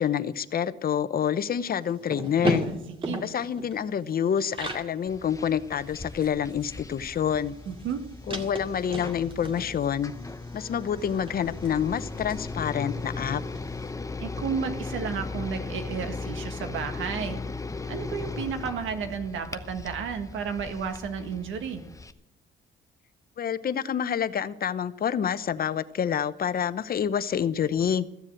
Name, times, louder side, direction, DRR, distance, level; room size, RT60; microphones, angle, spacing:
voice 1, 0.0-2.7 3.2-7.6 8.3-10.1 10.5-13.4 23.4-28.1, left 8 dB, 50° left, 14 dB, 0.8 m, -27 dB
sound 1, 1.8-4.9 5.3-5.4 5.7-13.7, equal, 25° right, 2.2 m, -36 dB
sound 2, 5.1-22.1, left 3 dB, 15° left, 0.8 m, -37 dB
voice 2, 7.7-8.0 14.2-17.4 17.9-21.8, right 6 dB, 80° right, 7 dB, 1.8 m, -32 dB
15.0 x 7.2 x 8.9 m, 0.85 s
cardioid pair, 90°, 20 cm